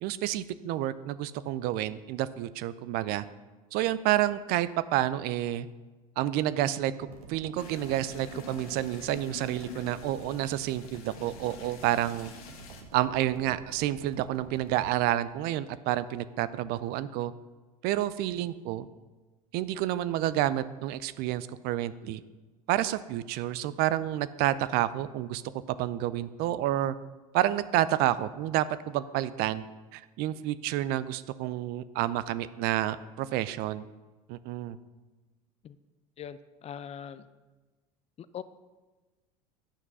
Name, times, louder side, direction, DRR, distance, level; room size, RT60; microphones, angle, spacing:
voice 1, 0.0-3.3 3.7-5.7 6.2-12.3 12.9-17.3 17.8-18.9 19.5-22.2 22.7-25.5 25.8-26.9 27.3-29.6 29.9-33.8 34.3-34.8, right 13 dB, 55° right, 15 dB, 0.5 m, -29 dB
sound 1, 7.0-14.9, right 3 dB, 85° right, 1.4 m, -49 dB
sound 2, 7.6-12.8, left 5 dB, 70° left, 1.4 m, -47 dB
voice 2, 36.2-37.3 38.2-38.4, left 8 dB, 35° left, 14 dB, 0.5 m, -41 dB
10.0 x 6.0 x 5.4 m, 1.2 s
hypercardioid pair, 80°, 19 cm